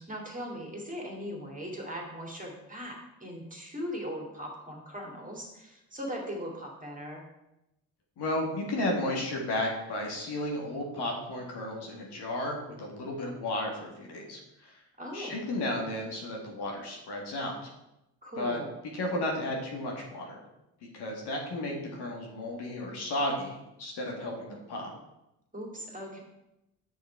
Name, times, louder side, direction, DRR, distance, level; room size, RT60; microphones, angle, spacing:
voice 1, 0.0-7.2 15.0-15.4 18.2-18.7 25.5-26.2, equal, 15° right, 0 dB, 2.6 m, -39 dB
voice 2, 8.2-14.8 15.1-17.7 18.4-18.6 18.9-20.4 20.9-24.9, left 1 dB, 60° left, 0 dB, 1.9 m, -33 dB
6.5 x 6.4 x 4.6 m, 0.91 s
hypercardioid pair, 50°, 45 cm